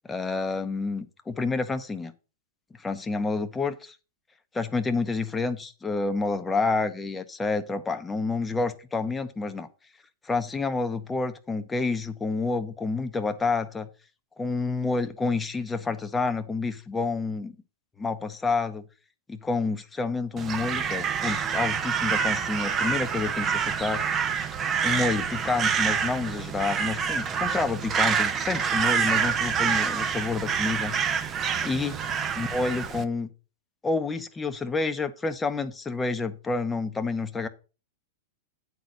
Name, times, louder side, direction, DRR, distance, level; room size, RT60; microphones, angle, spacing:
voice 1, 0.1-2.1 2.8-4.0 4.5-9.7 10.2-13.9 14.4-17.5 18.0-18.8 19.3-24.0 24.8-31.0 31.6-32.0 32.4-33.3 33.8-37.5, left 3 dB, 10° left, 8 dB, 0.9 m, -29 dB
Crow, 20.4-33.0, right 7 dB, 25° right, 0.8 m, -27 dB
9.2 x 4.2 x 6.2 m, 0.34 s
hypercardioid pair, 120°, 0 cm